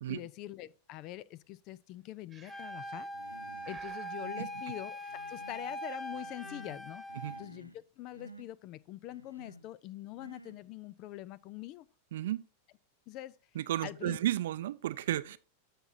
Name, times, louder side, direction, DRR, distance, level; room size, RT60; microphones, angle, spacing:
voice 1, 0.1-3.1 3.7-5.0 5.3-7.0 7.4-11.9 13.1-13.3 13.8-14.2, left 15 dB, 40° left, 0.4 m, -44 dB
Breathing, 2.3-2.9 3.6-4.2, right 6 dB, 15° right, 1.2 m, -55 dB
Wind instrument woodwind instrument, 2.5-7.5, equal, 10° left, 1.4 m, -42 dB
Human voice, 3.1-3.8 4.1-4.6 5.1-5.8 6.1-6.8 7.1-7.8 8.1-8.5 9.1-9.7 10.1-10.6, equal, 90° left, 0.6 m, -53 dB
voice 2, 12.1-12.4 13.6-15.4, right 13 dB, 60° right, 0.5 m, -33 dB
14.5 x 5.9 x 2.6 m
figure-of-eight pair, 90°, 0 cm